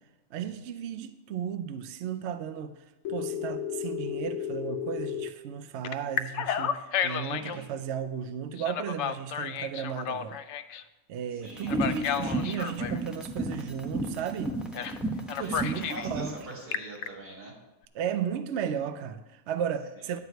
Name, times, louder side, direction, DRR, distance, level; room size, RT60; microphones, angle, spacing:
voice 1, 0.3-2.7 3.1-10.4 11.1-14.6 15.3-16.4 17.9-20.2, right 8 dB, 65° right, 0.7 m, -34 dB
Telephone, 3.0-5.3 5.8-7.6 8.6-10.8 11.7-13.0 14.7-15.0 15.3-16.1 16.5-17.1, left 8 dB, 65° left, 0.7 m, -32 dB
voice 2, 7.3-7.6 11.4-12.3 15.4-17.5, right 2 dB, 80° right, 4.8 m, -44 dB
sound 1, 11.5-16.4, right 2 dB, ahead, 0.8 m, -32 dB
11.0 x 4.8 x 7.9 m
omnidirectional pair, 1.6 m